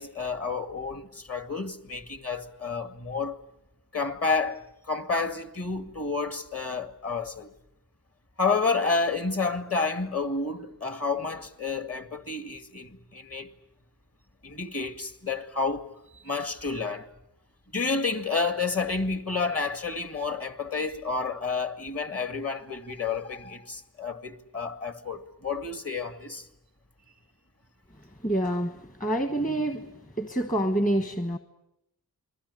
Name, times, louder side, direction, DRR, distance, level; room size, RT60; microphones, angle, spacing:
voice 1, 0.0-3.4 3.9-7.5 8.4-13.5 14.4-15.9 16.2-17.1 17.7-26.4, left 4 dB, 40° left, 2.2 m, -30 dB
voice 2, 28.2-29.9 30.2-31.4, right 1 dB, 20° left, 1.4 m, -27 dB
28.5 x 22.0 x 8.5 m
wide cardioid pair, 75°, 38 cm